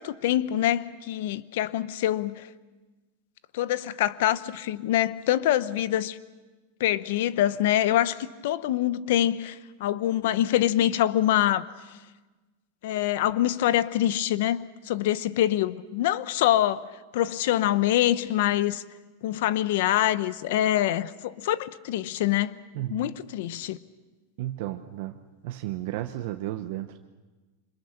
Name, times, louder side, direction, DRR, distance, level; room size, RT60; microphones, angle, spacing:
voice 1, 0.0-2.5 3.5-6.2 6.8-11.7 12.8-16.8 17.1-18.8 19.2-22.6 22.9-23.8, left 12 dB, 50° left, 0.9 m, -25 dB
voice 2, 22.7-23.1 24.4-25.1 25.4-27.1, right 14 dB, 45° right, 0.9 m, -33 dB
27.5 x 25.5 x 6.7 m
supercardioid pair, 180°, 0 cm